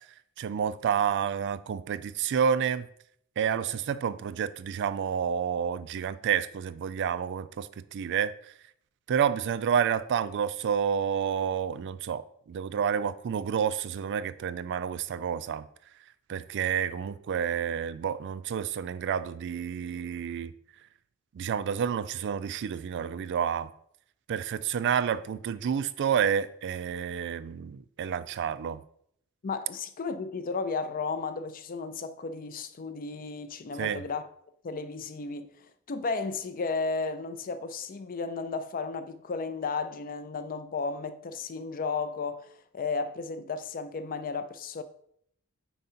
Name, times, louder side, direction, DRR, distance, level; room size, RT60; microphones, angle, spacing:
voice 1, 0.4-2.9 3.4-8.3 9.1-15.6 16.3-20.5 21.3-23.7 24.3-28.8 33.8-34.0, right 8 dB, 55° right, 0.3 m, -29 dB
voice 2, 29.4-34.3 34.6-35.5 35.9-42.5 42.7-44.8, left 4 dB, 40° left, 0.5 m, -34 dB
4.6 x 3.9 x 5.5 m
head